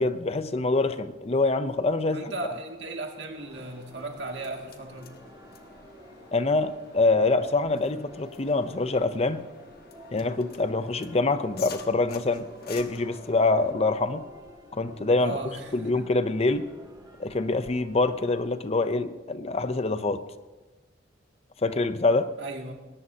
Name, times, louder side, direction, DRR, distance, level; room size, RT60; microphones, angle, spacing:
voice 1, 0.0-2.3 6.3-9.4 10.1-14.2 14.7-15.4 15.7-16.7 17.2-20.2 21.6-22.3, left 3 dB, 35° left, 11 dB, 0.6 m, -25 dB
voice 2, 2.1-5.2 15.2-16.1 22.4-22.7, right 2 dB, 65° right, 1 dB, 2.3 m, -36 dB
sound 1, 3.4-18.5, equal, 20° right, 2.0 m, -51 dB
sound 2, 3.5-13.7, left 6 dB, 55° left, 1.3 m, -49 dB
20.5 x 18.5 x 2.8 m, 1.2 s
head